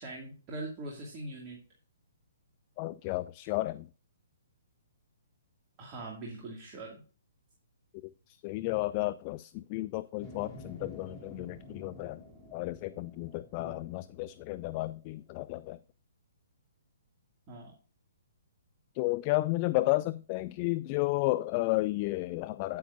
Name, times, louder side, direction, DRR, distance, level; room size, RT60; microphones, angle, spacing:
voice 1, 0.0-1.6 5.8-7.0 13.6-13.8 17.5-17.7, right 2 dB, 30° right, 2.3 m, -42 dB
voice 2, 2.8-3.9 8.4-12.2 12.5-15.8 19.0-22.8, left 19 dB, 35° left, 0.3 m, -32 dB
sound 1, 10.2-15.2 15.6-15.7, left 1 dB, ahead, 2.9 m, -51 dB
9.2 x 9.1 x 2.6 m
figure-of-eight pair, 125°, 0 cm